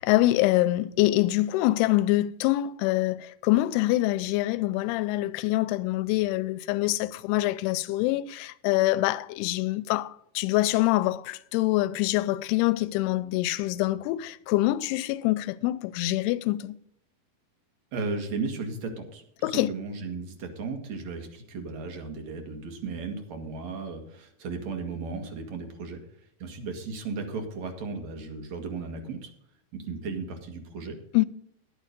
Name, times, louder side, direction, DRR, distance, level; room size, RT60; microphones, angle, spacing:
voice 1, 0.0-16.8 19.4-19.7 31.1-31.3, left 17 dB, 90° left, 2.6 m, -25 dB
voice 2, 17.9-26.0 26.4-29.3 29.7-31.0, right 4 dB, 50° right, 2.6 m, -35 dB
10.5 x 9.5 x 5.2 m
omnidirectional pair, 4.5 m